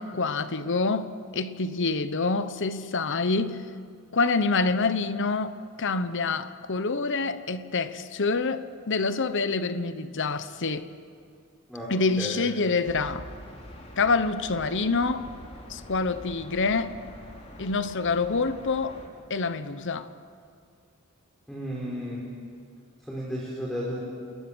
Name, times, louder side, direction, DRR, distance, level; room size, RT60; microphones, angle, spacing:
voice 1, 0.0-3.6 4.1-10.9 11.9-13.3 14.0-15.2 15.7-17.0 17.6-19.0 19.3-20.1, left 4 dB, 60° left, 1.0 m, -27 dB
voice 2, 11.7-12.5 21.5-22.3 23.1-24.0, equal, ahead, 3.8 m, -33 dB
sound 1, 12.8-19.1, left 1 dB, 30° left, 3.1 m, -45 dB
28.5 x 21.0 x 6.3 m
head